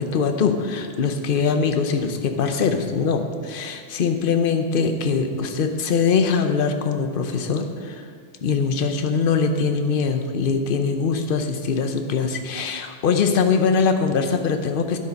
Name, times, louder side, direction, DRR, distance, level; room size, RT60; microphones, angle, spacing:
voice 1, 0.0-8.1 8.4-15.0, left 5 dB, 50° left, 6 dB, 0.9 m, -22 dB
9.9 x 8.5 x 5.2 m, 2.1 s
omnidirectional pair, 1.3 m